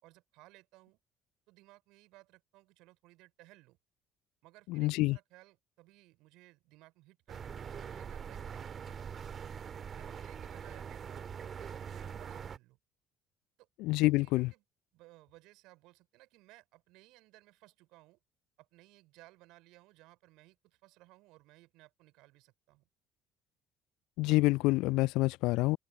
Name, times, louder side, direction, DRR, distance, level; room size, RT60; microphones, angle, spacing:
voice 1, 0.0-1.0 1.5-3.8 4.4-8.8 10.0-12.8 13.6-13.7 14.2-14.6 14.9-18.2 18.6-22.9, right 20 dB, 60° right, 4.7 m, -60 dB
voice 2, 4.7-5.2 13.8-14.5 24.2-25.8, left 21 dB, 60° left, 0.5 m, -27 dB
sound 1, 7.3-12.6, right 7 dB, 40° right, 1.7 m, -43 dB
figure-of-eight pair, 55°, 0 cm